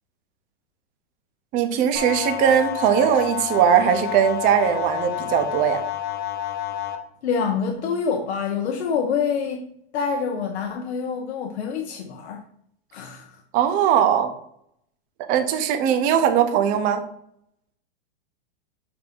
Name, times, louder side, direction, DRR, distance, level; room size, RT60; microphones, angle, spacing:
voice 1, 1.5-5.8 13.5-14.3 15.2-17.0, right 9 dB, 25° right, 7 dB, 0.6 m, -20 dB
sound 1, 2.0-7.0, left 11 dB, 45° left, 1.0 m, -29 dB
voice 2, 7.2-9.6 9.9-12.4 12.9-13.4, left 6 dB, 85° left, 3 dB, 0.8 m, -26 dB
6.9 x 2.6 x 5.2 m, 0.70 s
supercardioid pair, 160°, 32 cm